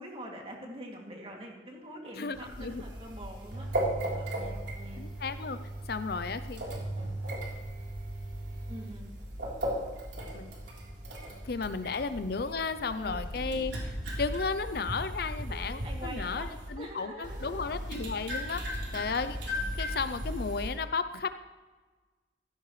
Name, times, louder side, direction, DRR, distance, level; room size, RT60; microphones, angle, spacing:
voice 1, 0.0-3.7 4.1-5.0 8.7-9.1 11.5-11.7 12.9-13.3 15.5-17.8, right 1 dB, 30° right, -1 dB, 2.6 m, -45 dB
voice 2, 2.1-2.8 5.0-5.6 5.9-6.6 10.3-10.5 11.4-21.3, left 4 dB, 55° left, 11 dB, 0.5 m, -34 dB
sound 1, 2.3-16.7 17.2-20.7, equal, 65° right, 3.7 m, -37 dB
16.0 x 15.5 x 3.2 m, 1.3 s
head